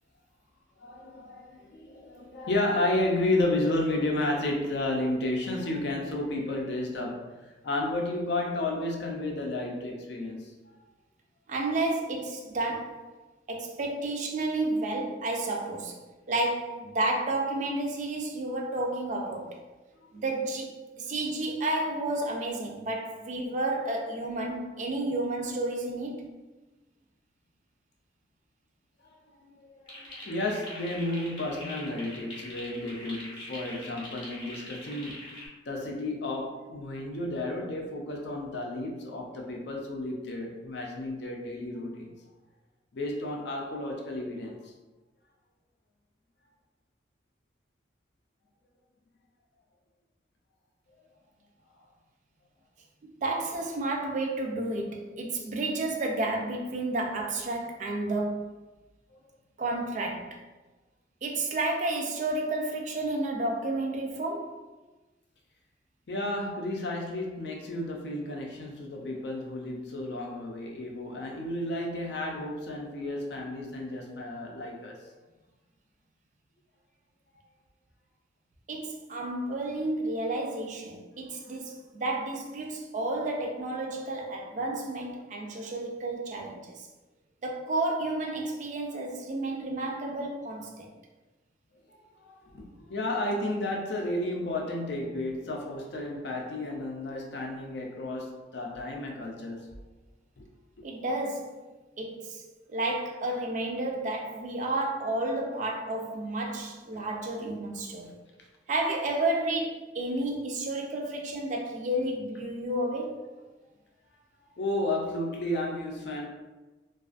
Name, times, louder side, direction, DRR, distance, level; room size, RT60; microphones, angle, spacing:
voice 1, 0.8-7.3 7.6-10.8 29.0-35.2 35.7-42.1 42.9-44.7 66.1-75.0 92.2-99.7 100.4-100.5 108.0-108.1 114.6-116.3, left 1 dB, 70° left, 0.5 m, -32 dB
voice 2, 11.5-13.1 13.5-16.0 16.3-19.6 20.1-26.3 53.0-58.5 59.6-60.4 61.2-64.6 78.7-86.9 87.4-90.9 100.8-101.6 102.0-102.4 102.7-108.2 108.7-113.2, right 2 dB, 45° right, 0.4 m, -31 dB
sound 1, 29.9-35.5, left 1 dB, 30° left, 0.6 m, -43 dB
2.4 x 2.3 x 2.4 m
head